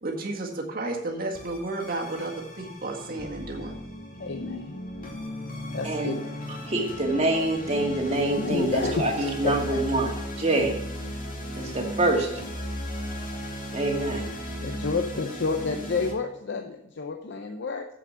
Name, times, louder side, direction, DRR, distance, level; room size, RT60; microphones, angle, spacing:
voice 1, 0.0-3.8, right 2 dB, 50° right, -1 dB, 1.9 m, -32 dB
sound 1, 1.3-16.1, equal, 45° left, 2.5 m, -36 dB
voice 2, 4.2-4.8 5.7-6.3 8.3-9.1 9.4-9.8 14.6-17.9, left 4 dB, 60° left, 5 dB, 0.7 m, -30 dB
voice 3, 5.8-6.2 6.7-10.8 11.6-12.3 13.7-14.3, right 2 dB, 35° right, 1 dB, 1.8 m, -25 dB
7.6 x 7.3 x 6.8 m, 0.85 s
head